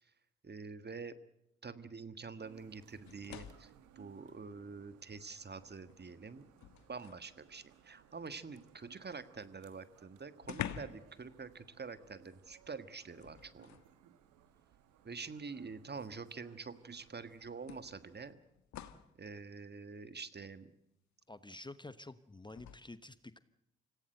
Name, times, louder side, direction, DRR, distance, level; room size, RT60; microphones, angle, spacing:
voice 1, 0.4-1.2 1.6-6.5 6.9-13.8 15.0-18.4 19.2-20.7, right 4 dB, 35° right, 12 dB, 1.6 m, -47 dB
sound 1, 2.4-18.3, right 10 dB, 70° right, 1.6 m, -64 dB
sound 2, 3.0-3.8 5.1-5.2 5.7-7.3 9.4-9.5 9.7-9.8 10.4-11.1 11.4-11.6 13.2-13.9 15.1-15.2 16.7-16.8 17.7-19.1 22.5-22.8, left 10 dB, 65° left, 1.4 m, -47 dB
voice 2, 21.3-23.4, left 2 dB, 15° left, 13 dB, 1.1 m, -50 dB
26.0 x 16.5 x 7.9 m, 0.83 s
hypercardioid pair, 40°, 31 cm